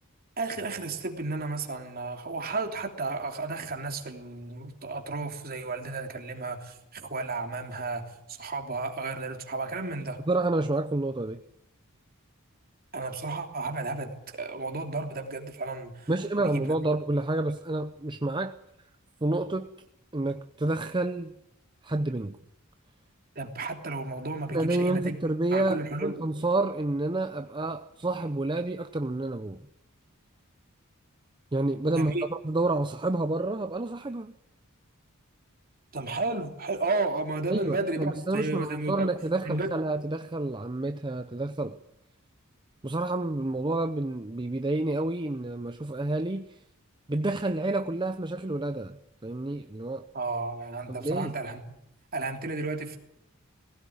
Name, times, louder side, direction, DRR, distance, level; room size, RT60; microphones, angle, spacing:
voice 1, 0.4-10.2 12.9-16.1 16.4-16.8 23.3-25.2 25.5-26.2 31.9-32.2 35.9-39.1 39.5-39.7 50.1-51.7 52.1-53.0, right 3 dB, 45° right, 3.1 m, -33 dB
voice 2, 10.3-11.4 16.1-18.5 19.2-19.7 20.1-21.4 21.8-22.4 24.5-29.6 31.5-34.3 37.5-41.8 42.8-46.5 47.1-49.0 49.2-50.1 50.9-51.3, right 2 dB, 20° right, 0.7 m, -29 dB
19.5 x 17.0 x 9.5 m
head